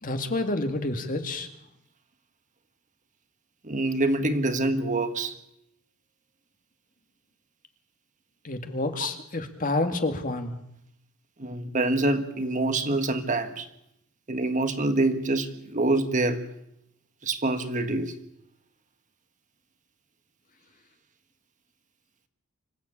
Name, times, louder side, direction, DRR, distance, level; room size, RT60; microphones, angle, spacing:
voice 1, 0.0-1.5 8.4-10.6, left 2 dB, 40° left, 6 dB, 2.2 m, -29 dB
voice 2, 3.6-5.3 11.4-13.7 14.3-16.4 17.2-18.2, right 2 dB, 35° right, 9 dB, 1.5 m, -26 dB
25.5 x 14.0 x 8.8 m, 0.78 s
head